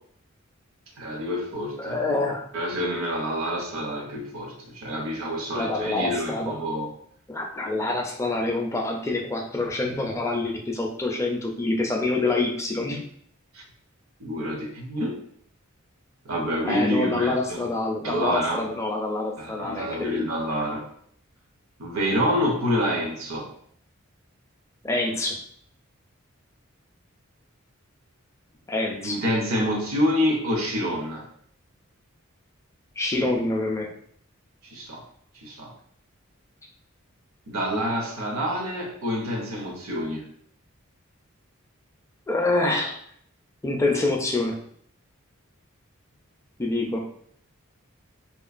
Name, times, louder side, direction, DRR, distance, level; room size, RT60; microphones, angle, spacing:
voice 1, 1.0-2.0 2.5-6.9 13.5-13.6 14.2-15.2 16.2-17.6 18.0-18.6 19.4-20.9 21.8-23.5 29.0-31.3 34.6-35.0 35.4-35.7 37.5-40.2, equal, 80° right, 1 dB, 0.7 m, -27 dB
voice 2, 1.8-2.5 5.5-6.5 7.3-13.0 16.7-20.3 24.8-25.4 28.7-29.2 33.0-33.9 42.3-43.0 43.6-44.6 46.6-47.1, left 2 dB, 15° left, 1 dB, 0.4 m, -26 dB
2.9 x 2.3 x 2.4 m, 0.63 s
head